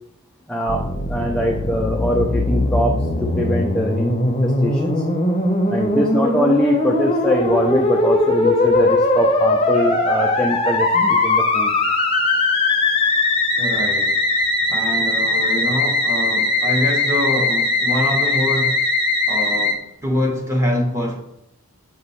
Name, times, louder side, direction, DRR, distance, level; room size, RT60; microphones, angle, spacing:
voice 1, 0.5-0.8 1.1-5.0 5.7-11.7, equal, 5° left, -1 dB, 0.4 m, -22 dB
Musical instrument, 0.7-19.7, left 2 dB, 25° left, 0.7 m, -19 dB
voice 2, 13.6-14.2 14.7-18.8 19.3-21.2, equal, 15° right, 0 dB, 1.0 m, -24 dB
6.1 x 3.0 x 5.5 m, 0.82 s
head